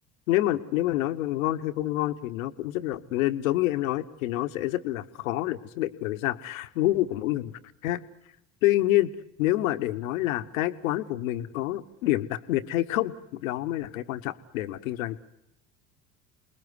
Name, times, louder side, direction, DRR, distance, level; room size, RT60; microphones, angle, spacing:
voice 1, 0.3-7.5 7.8-8.0 8.6-9.1 9.4-13.1 13.4-15.2, left 15 dB, 75° left, 11 dB, 1.2 m, -27 dB
28.5 x 20.0 x 9.7 m, 0.83 s
figure-of-eight pair, 60°, 41 cm